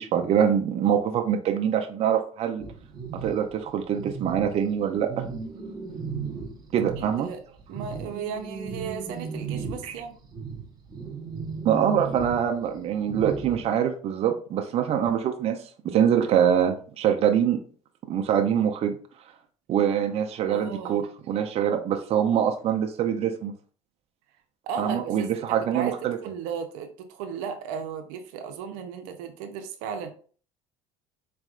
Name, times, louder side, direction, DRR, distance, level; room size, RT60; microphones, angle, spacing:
voice 1, 0.0-2.6 3.1-5.3 6.7-7.3 9.8-9.9 11.6-17.6 18.1-19.0 19.7-23.5 24.8-26.2, right 9 dB, 50° right, 0.6 m, -24 dB
sound 1, 2.6-7.2 7.6-13.6, right 5 dB, 30° right, 1.0 m, -36 dB
voice 2, 7.0-7.4 7.7-10.2 20.5-21.1 24.7-25.1 25.5-25.9 26.2-30.1, right 6 dB, 85° right, 0.6 m, -35 dB
4.2 x 3.4 x 2.4 m
supercardioid pair, 100°, 14 cm